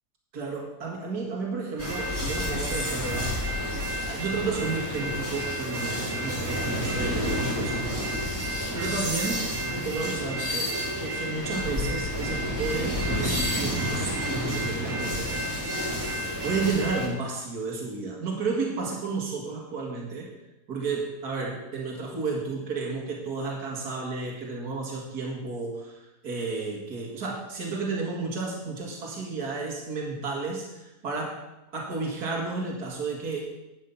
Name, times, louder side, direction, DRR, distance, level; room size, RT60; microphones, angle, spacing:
voice 1, 0.3-3.4 3.7-10.7 11.0-15.3 16.4-20.3 20.7-31.4 31.7-33.4, right 4 dB, 65° right, -1 dB, 2.5 m, -32 dB
sound 1, 1.8-17.1, equal, 10° right, 3.3 m, -29 dB
11.5 x 8.6 x 5.5 m, 0.96 s
omnidirectional pair, 1.8 m